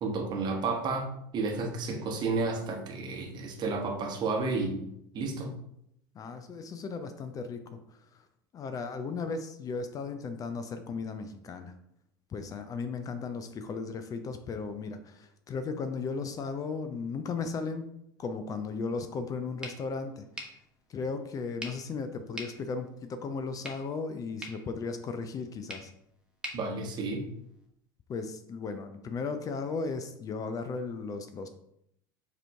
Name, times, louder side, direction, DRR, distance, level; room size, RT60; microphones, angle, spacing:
voice 1, 0.0-5.5 26.5-27.2, right 3 dB, 40° right, 3 dB, 1.0 m, -32 dB
voice 2, 6.1-8.3 8.5-11.8 12.3-17.9 18.2-20.2 20.9-25.9 28.1-31.5, left 4 dB, 30° left, 9 dB, 0.5 m, -36 dB
sound 1, 19.6-27.7, equal, 10° right, 1.1 m, -47 dB
4.9 x 3.0 x 3.4 m, 0.75 s
figure-of-eight pair, 75°, 11 cm